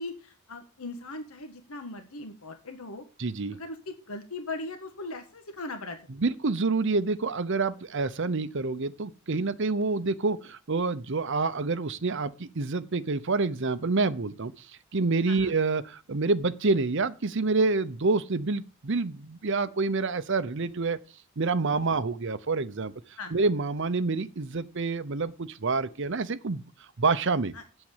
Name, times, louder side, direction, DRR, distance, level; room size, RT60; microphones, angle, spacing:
voice 1, 0.0-3.0 3.5-6.0 15.2-15.5 21.7-21.9 23.2-23.4 27.5-27.6, left 2 dB, 85° left, 1.6 m, -39 dB
voice 2, 3.2-3.6 6.2-14.7 14.9-21.0 21.4-22.9 23.3-26.6 27.0-27.5, right 3 dB, 60° right, 0.8 m, -27 dB
7.9 x 7.3 x 7.3 m
head